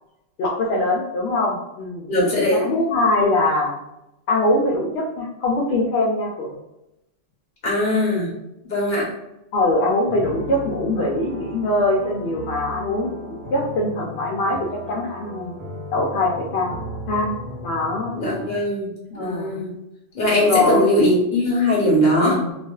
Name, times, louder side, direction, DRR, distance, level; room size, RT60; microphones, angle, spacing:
voice 1, 0.4-2.1 2.5-3.7 4.3-6.5 9.5-14.6 14.9-15.5 15.9-16.8 17.1-17.3 17.6-18.1 19.1-19.6 20.5-20.9 21.9-22.5, left 2 dB, 65° left, -3 dB, 0.8 m, -22 dB
voice 2, 2.1-2.7 7.6-8.3 8.7-9.1 18.1-18.9 19.2-19.7 20.1-22.4, left 1 dB, 45° left, -4 dB, 1.1 m, -20 dB
sound 1, 10.1-18.6, left 1 dB, 55° right, 0.9 m, -35 dB
2.4 x 2.3 x 2.2 m, 0.90 s
omnidirectional pair, 1.2 m